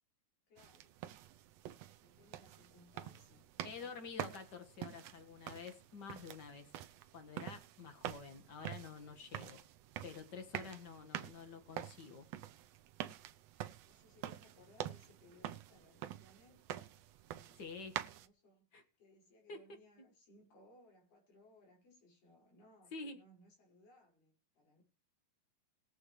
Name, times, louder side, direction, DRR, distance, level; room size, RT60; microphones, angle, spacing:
voice 1, 0.5-0.9 2.0-3.9 13.8-16.9 17.3-24.8, left 1 dB, 75° left, 6.9 m, -65 dB
sound 1, 0.6-18.3, right 12 dB, 75° right, 1.5 m, -47 dB
voice 2, 3.6-6.7 7.1-9.6 10.0-12.3 17.6-18.0 18.7-18.8 19.5-19.6 22.9-23.2, left 5 dB, 45° left, 1.6 m, -49 dB
21.0 x 8.0 x 3.2 m
omnidirectional pair, 3.8 m